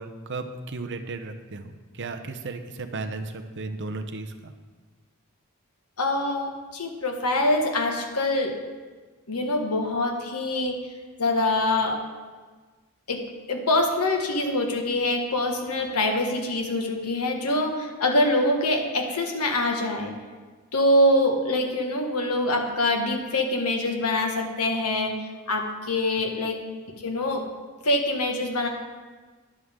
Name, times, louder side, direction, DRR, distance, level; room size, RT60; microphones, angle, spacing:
voice 1, 0.0-4.5, right 3 dB, 55° right, 6 dB, 0.8 m, -35 dB
voice 2, 6.0-8.5 9.3-10.8 11.2-12.0 13.1-20.1 20.7-25.1 25.5-26.6 27.0-27.4 27.8-28.7, left 1 dB, 85° left, 2 dB, 1.7 m, -24 dB
13.0 x 11.0 x 3.8 m, 1.4 s
head